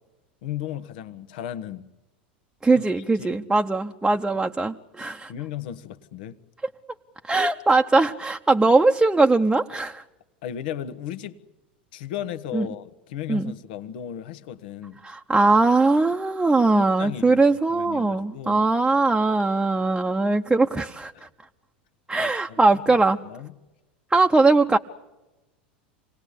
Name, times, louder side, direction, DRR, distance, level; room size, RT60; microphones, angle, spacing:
voice 1, 0.4-1.9 2.8-2.9 3.2-3.4 5.0-6.4 10.4-11.4 11.9-15.0 16.7-17.4 17.7-18.7 21.1-21.3 22.2-23.5, left 10 dB, 65° left, 1.3 m, -35 dB
voice 2, 2.6-5.3 7.2-10.0 12.5-12.7 13.3-13.5 15.0-21.3 22.1-23.2 24.1-24.8, right 3 dB, 10° right, 0.9 m, -20 dB
27.5 x 19.5 x 8.4 m
hypercardioid pair, 90°, 5 cm